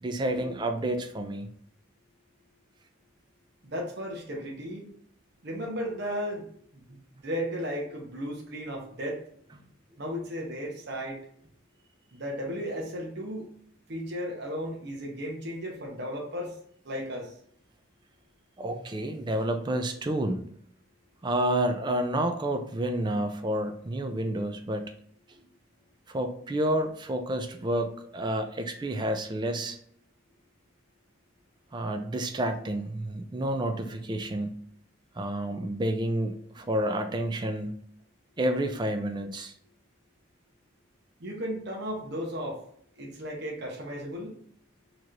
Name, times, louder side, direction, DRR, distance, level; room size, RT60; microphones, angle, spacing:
voice 1, 0.0-1.5 18.6-20.4 21.2-24.9 26.1-29.8 31.7-34.6 35.2-37.8 38.4-39.5, right 1 dB, 20° right, 6 dB, 0.4 m, -29 dB
voice 2, 3.6-4.9 5.4-9.2 10.0-11.2 12.1-13.5 13.9-16.6 16.8-17.3 41.2-42.6 43.0-44.4, equal, 55° right, 0 dB, 0.8 m, -35 dB
4.6 x 3.0 x 2.5 m, 0.64 s
head